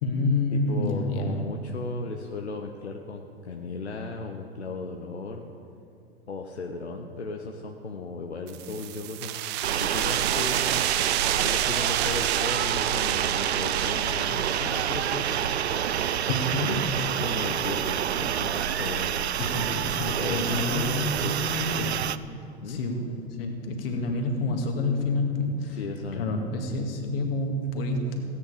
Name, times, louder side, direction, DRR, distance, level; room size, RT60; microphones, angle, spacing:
voice 1, 0.0-1.4 16.3-17.0 19.4-22.0 22.7-23.0 23.4-25.8 26.1-28.2, left 2 dB, 60° left, 2 dB, 2.1 m, -28 dB
voice 2, 0.5-5.5 6.3-9.3 9.8-15.4 17.0-19.1 20.2-21.6 22.6-22.8 25.7-26.4, left 3 dB, 80° left, 2 dB, 0.9 m, -36 dB
sound 1, 8.5-19.8, right 13 dB, 35° right, 0.6 m, -31 dB
sound 2, 9.6-22.2, right 9 dB, 80° right, 0.5 m, -28 dB
16.5 x 9.7 x 5.0 m, 2.5 s
figure-of-eight pair, 90°, 32 cm